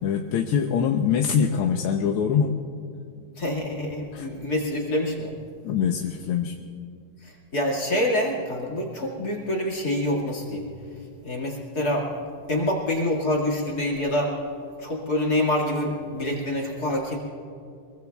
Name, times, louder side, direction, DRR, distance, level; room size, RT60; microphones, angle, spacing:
voice 1, 0.0-2.6 4.1-4.3 5.6-6.5, left 7 dB, 80° left, 3 dB, 1.7 m, -23 dB
voice 2, 3.4-5.3 7.2-10.7 11.2-12.1 12.5-14.3 14.8-17.2, left 1 dB, 45° left, -1 dB, 2.6 m, -26 dB
24.0 x 23.0 x 2.3 m, 2.3 s
omnidirectional pair, 2.4 m